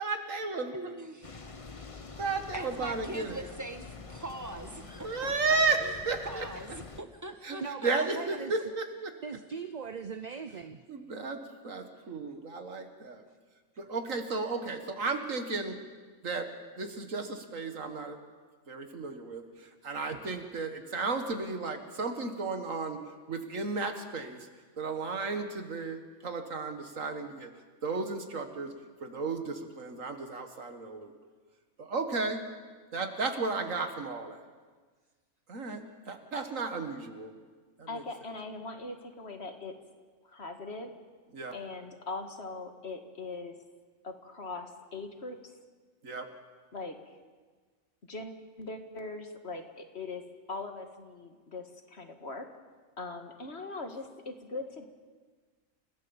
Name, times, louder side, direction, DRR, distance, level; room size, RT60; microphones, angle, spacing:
voice 1, 0.0-0.7 2.2-3.4 5.0-6.4 7.4-7.6 7.8-9.1 10.9-13.2 13.8-15.8 16.2-16.5 16.8-18.2 18.7-23.0 23.3-24.5 24.8-27.5 27.8-28.7 29.0-31.1 31.8-32.4 32.9-34.4 35.5-37.3 37.8-38.0 41.3-41.6 46.0-46.3, right 3 dB, 75° right, 6 dB, 2.2 m, -33 dB
voice 2, 0.7-1.3 2.5-5.9 6.2-7.9, right 1 dB, 15° right, 7 dB, 1.5 m, -42 dB
sound 1, 1.2-7.0, left 4 dB, 25° left, 1.0 m, -46 dB
voice 3, 7.6-8.5 9.2-10.8 13.8-13.9, right 6 dB, 40° right, 9 dB, 0.7 m, -39 dB
voice 4, 37.9-39.7 40.2-40.9 41.5-43.6 44.0-45.4 46.7-47.0 48.1-48.3 48.6-50.2 50.5-52.5 53.0-54.9, left 3 dB, 50° left, 5 dB, 2.0 m, -40 dB
28.5 x 16.0 x 7.3 m, 1.5 s
omnidirectional pair, 1.4 m